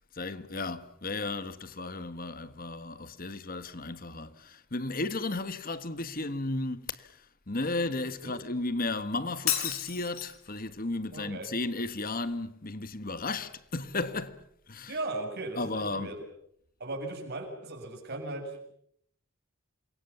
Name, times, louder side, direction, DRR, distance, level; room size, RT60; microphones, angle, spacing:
voice 1, 0.1-7.1 7.5-14.4 14.7-15.0 15.6-16.2, left 2 dB, 45° left, 1.6 m, -34 dB
Shatter, 9.5-10.5, left 11 dB, 80° left, 4.4 m, -31 dB
voice 2, 11.1-11.5 14.9-16.2 16.8-18.7, right 2 dB, 50° right, 6.8 m, -37 dB
28.0 x 23.0 x 7.2 m
head